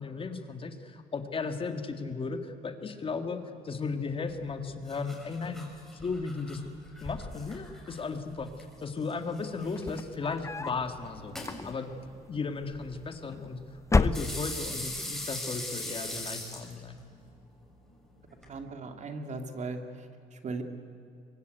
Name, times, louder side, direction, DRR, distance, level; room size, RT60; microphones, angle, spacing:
voice 1, 0.0-3.4 3.6-6.6 7.0-11.4 11.6-11.9 12.3-13.6 13.9-17.0, left 4 dB, 30° left, 7 dB, 2.1 m, -35 dB
sound 1, 4.3-18.5, left 1 dB, ahead, 7.2 m, -43 dB
sound 2, 9.7-10.9 11.4-12.0 13.0-13.5 13.8-14.8, left 3 dB, 15° left, 0.7 m, -29 dB
voice 2, 18.5-20.6, right 3 dB, 45° right, 6 dB, 2.7 m, -38 dB
23.5 x 23.5 x 9.4 m, 2.5 s
cardioid pair, 110°, 17 cm